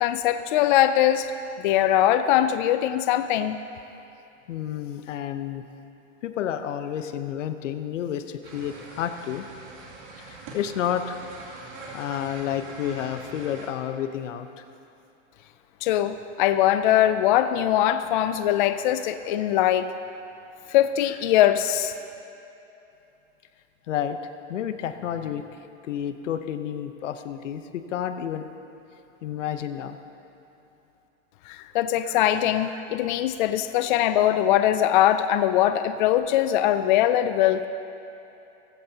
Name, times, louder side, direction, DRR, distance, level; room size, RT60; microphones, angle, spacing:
voice 1, 0.0-1.3 1.6-3.6 15.8-19.9 20.7-21.9 31.5-37.7, left 12 dB, 45° left, 10 dB, 0.4 m, -21 dB
voice 2, 4.5-5.6 6.2-9.4 10.2-11.2 11.9-14.6 23.9-24.2 24.5-25.5 25.8-28.4 29.2-30.0, left 10 dB, 80° left, 9 dB, 1.0 m, -30 dB
sound 1, 8.4-13.7, right 3 dB, 50° right, 3.1 m, -42 dB
18.5 x 15.5 x 2.9 m, 2.9 s
supercardioid pair, 155°, 37 cm